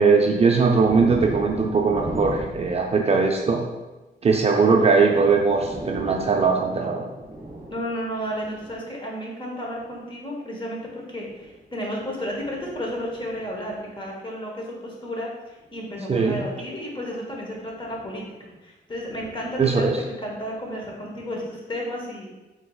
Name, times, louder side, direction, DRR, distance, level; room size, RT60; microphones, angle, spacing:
voice 1, 0.0-3.6 4.2-7.1 16.1-16.5 19.6-20.0, right 4 dB, 35° right, 1 dB, 0.4 m, -20 dB
sound 1, 0.8-3.6 4.9-5.0 5.3-8.9 9.7-10.0 11.2-14.1 15.6-15.8 17.5-18.2 19.0-20.4, right 2 dB, 15° right, 1.3 m, -38 dB
voice 2, 7.7-22.3, equal, 25° left, -2 dB, 1.1 m, -32 dB
4.5 x 3.9 x 2.3 m, 1.1 s
cardioid pair, 100°, 18 cm